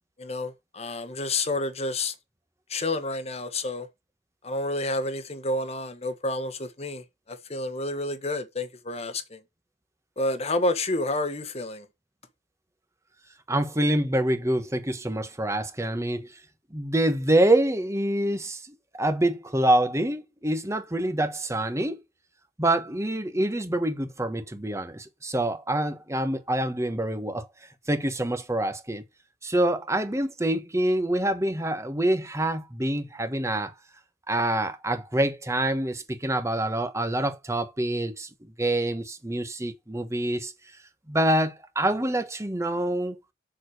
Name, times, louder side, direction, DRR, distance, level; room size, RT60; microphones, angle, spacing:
voice 1, 0.2-2.1 2.7-3.9 4.4-9.4 10.2-11.8, left 2 dB, 35° left, 1.4 m, -29 dB
voice 2, 13.5-16.3 16.7-18.6 18.9-22.0 22.6-27.5 27.9-29.0 29.4-33.7 34.3-38.3 38.6-40.5 41.1-43.2, right 1 dB, 15° right, 1.3 m, -26 dB
7.2 x 6.5 x 6.6 m
head